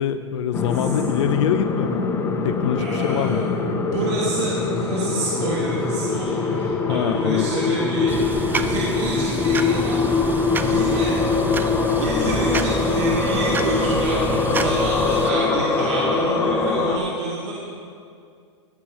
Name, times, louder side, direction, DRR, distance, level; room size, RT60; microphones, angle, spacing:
voice 1, 0.0-2.0 2.4-3.4 6.9-7.5, left 10 dB, 70° left, 9 dB, 0.5 m, -24 dB
sound 1, 0.5-17.0, left 4 dB, 15° left, 0.9 m, -23 dB
voice 2, 2.8-3.5 3.7-11.2 11.8-17.5, right 3 dB, 65° right, -4 dB, 1.8 m, -28 dB
sound 2, 8.1-15.3, right 4 dB, 10° right, 0.4 m, -29 dB
16.5 x 6.0 x 4.6 m, 2.3 s
hypercardioid pair, 130°, 16 cm